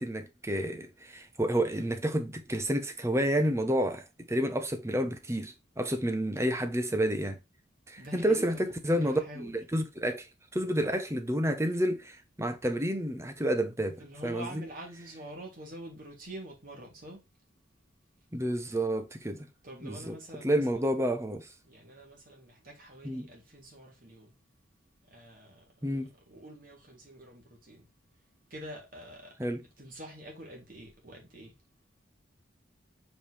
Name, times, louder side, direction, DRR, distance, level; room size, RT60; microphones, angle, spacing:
voice 1, 0.0-7.4 7.9-10.3 10.5-14.0 14.2-14.6 18.3-19.5 19.8-21.5 23.0-23.3 25.8-26.1 29.4-29.6, right 1 dB, 15° right, 1.0 m, -30 dB
voice 2, 8.0-8.6 8.9-9.5 14.0-17.2 19.6-20.9 21.7-24.3 25.1-25.6 26.3-27.9 28.5-29.3 29.8-31.5, right 1 dB, 50° right, 3.0 m, -46 dB
5.4 x 5.1 x 4.2 m
head